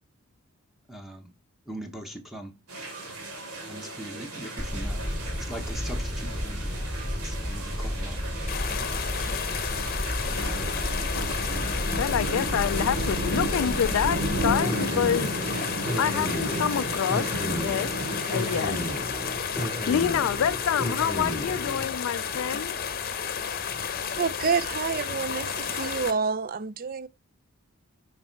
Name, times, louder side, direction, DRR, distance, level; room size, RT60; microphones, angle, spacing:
voice 1, 0.9-1.2 1.7-2.5 3.7-5.0 5.4-6.8 7.2-8.2 8.5-8.6 9.3-9.9, equal, ahead, 0.9 m, -41 dB
sound 1, 2.7-19.0, right 1 dB, 85° right, 2.7 m, -34 dB
sound 2, 4.6-22.0, equal, 20° right, 3.9 m, -33 dB
sound 3, 8.5-26.1, left 7 dB, 40° left, 0.8 m, -32 dB
voice 2, 12.0-15.3 16.0-17.9 18.3-18.8 19.6-22.8, left 8 dB, 65° left, 0.3 m, -27 dB
voice 3, 24.2-27.1, right 5 dB, 40° right, 0.5 m, -28 dB
7.8 x 5.3 x 4.6 m
head